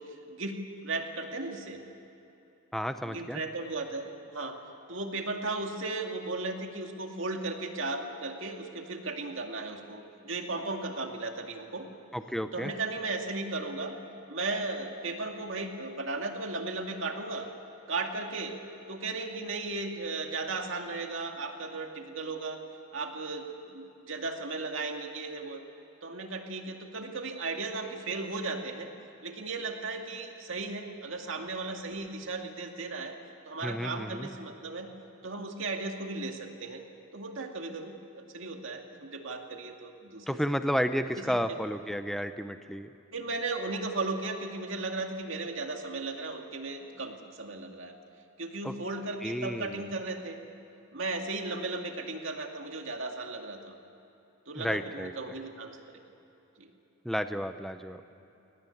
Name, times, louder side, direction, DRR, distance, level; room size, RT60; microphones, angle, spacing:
voice 1, 0.0-1.8 3.0-4.6 4.9-11.9 12.5-14.0 14.3-17.5 17.9-18.6 18.9-22.6 22.9-25.6 26.0-28.9 29.2-33.2 33.5-34.9 35.2-36.8 37.1-40.4 41.2-41.3 43.1-48.0 48.4-50.4 50.9-53.8 54.5-56.0 56.6-56.7, right 3 dB, 60° right, 3 dB, 2.3 m, -36 dB
voice 2, 2.7-3.4 12.1-12.7 33.6-34.3 40.3-42.9 48.6-48.7 49.2-49.9 54.6-55.1 57.0-58.0, equal, ahead, 9 dB, 0.6 m, -32 dB
23.0 x 18.5 x 9.9 m, 3.0 s
head